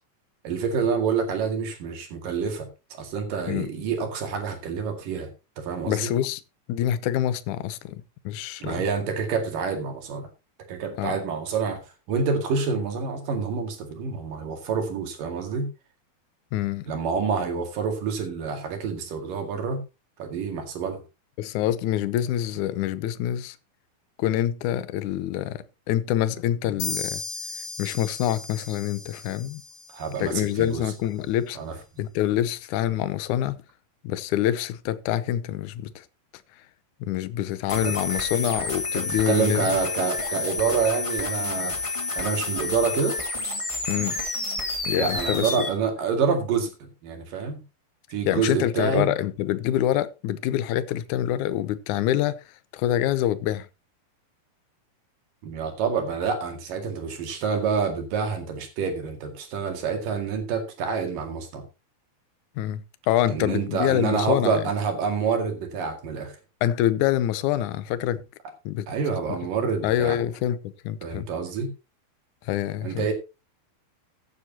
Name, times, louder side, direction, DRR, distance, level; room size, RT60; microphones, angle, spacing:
voice 1, 0.4-2.7 3.0-6.1 8.6-10.3 10.7-15.7 16.9-19.8 20.2-21.0 29.9-30.9 31.6-31.7 37.7-37.9 38.9-43.2 45.0-47.6 48.1-49.1 55.4-61.6 63.3-66.4 68.9-70.2 71.0-71.7 72.8-73.1, right 5 dB, 65° right, 3.7 m, -27 dB
voice 2, 5.8-6.4 6.7-8.8 11.0-11.2 16.5-16.9 21.4-23.6 24.2-27.2 27.8-29.6 30.2-31.6 32.0-33.6 34.0-36.1 37.0-39.7 43.9-44.2 44.8-45.7 48.3-53.7 62.6-64.6 66.6-68.2 68.7-68.9 69.8-71.3 72.4-73.1, left 12 dB, 75° left, 1.8 m, -26 dB
sound 1, 26.8-30.4, left 4 dB, 60° left, 4.9 m, -36 dB
sound 2, 37.7-45.7, left 3 dB, 20° left, 0.8 m, -29 dB
15.0 x 9.6 x 2.9 m
omnidirectional pair, 4.3 m